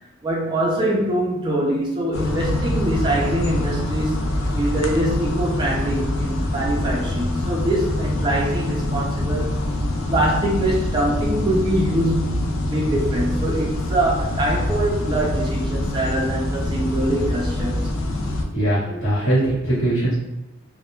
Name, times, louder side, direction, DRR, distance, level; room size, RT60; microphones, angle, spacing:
voice 1, 0.2-9.5 10.1-17.9, right 1 dB, 25° right, -3 dB, 0.4 m, -24 dB
sound 1, 2.1-18.5, left 1 dB, 90° left, 0.4 m, -25 dB
voice 2, 18.5-20.1, right 1 dB, 60° left, -10 dB, 1.0 m, -21 dB
2.1 x 2.1 x 3.0 m, 0.93 s
head